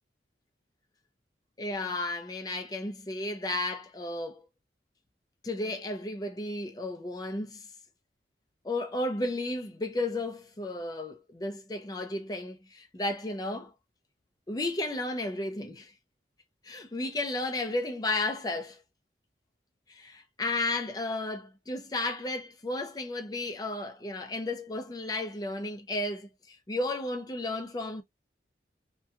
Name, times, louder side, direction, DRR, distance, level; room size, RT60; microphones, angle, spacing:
voice 1, 1.6-4.5 5.4-7.7 8.6-13.7 14.5-15.9 16.6-18.8 19.9-28.0, left 2 dB, 20° left, 0.4 m, -33 dB
2.8 x 2.2 x 2.3 m
head